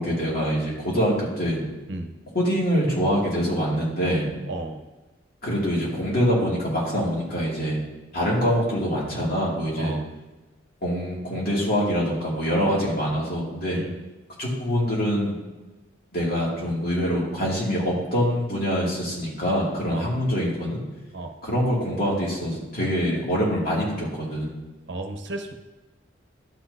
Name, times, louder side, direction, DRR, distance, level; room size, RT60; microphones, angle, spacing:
voice 1, 0.0-1.7 2.3-4.3 5.4-7.8 8.1-9.9 10.8-13.8 14.4-15.4 16.1-20.8 21.4-24.5, equal, 50° left, -5 dB, 2.4 m, -24 dB
voice 2, 4.5-4.8 9.8-10.0 13.7-13.9 19.9-20.1 21.1-21.3 24.9-25.5, right 2 dB, 60° right, 5 dB, 0.8 m, -33 dB
11.5 x 6.1 x 2.7 m, 1.2 s
head